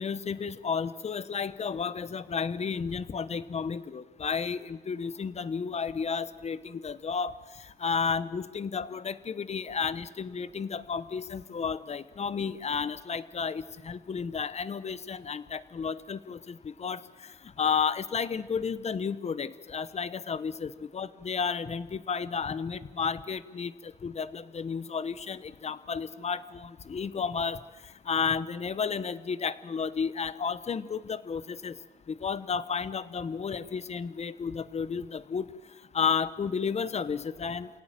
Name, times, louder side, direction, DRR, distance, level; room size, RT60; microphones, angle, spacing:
voice 1, 0.0-7.3 7.6-17.3 17.6-27.6 28.0-31.8 32.1-35.5 35.9-37.7, left 6 dB, 45° left, 15 dB, 1.1 m, -32 dB
27.5 x 18.0 x 9.1 m, 1.3 s
wide cardioid pair, 125°, 16 cm